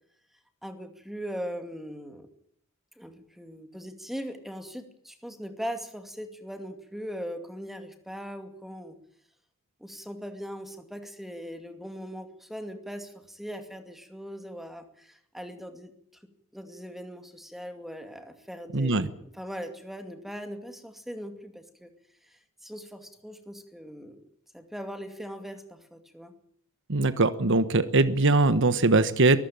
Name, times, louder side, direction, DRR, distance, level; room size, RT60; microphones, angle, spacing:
voice 1, 0.6-2.3 3.0-9.0 9.8-15.9 16.5-21.9 22.2-24.2 24.5-26.3, equal, ahead, 7 dB, 2.4 m, -40 dB
voice 2, 18.7-19.1 26.9-29.4, right 3 dB, 60° right, 13 dB, 1.2 m, -21 dB
22.5 x 15.0 x 8.9 m, 0.69 s
head